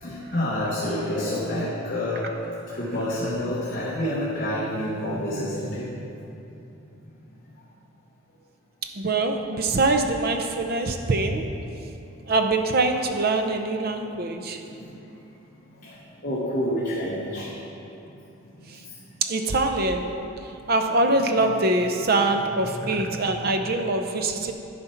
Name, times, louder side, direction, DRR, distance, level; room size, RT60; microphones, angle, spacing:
voice 1, 0.0-2.3 2.6-6.1 10.8-10.9 14.7-15.1 15.8-17.5 18.6-18.7 20.9-21.6 22.0-22.1 22.6-23.5, left 1 dB, 40° left, -7 dB, 1.1 m, -29 dB
voice 2, 8.8-11.5 12.3-14.6 19.2-20.1 20.7-24.5, right 2 dB, 45° right, 6 dB, 0.6 m, -23 dB
11.5 x 4.3 x 5.7 m, 2.9 s
head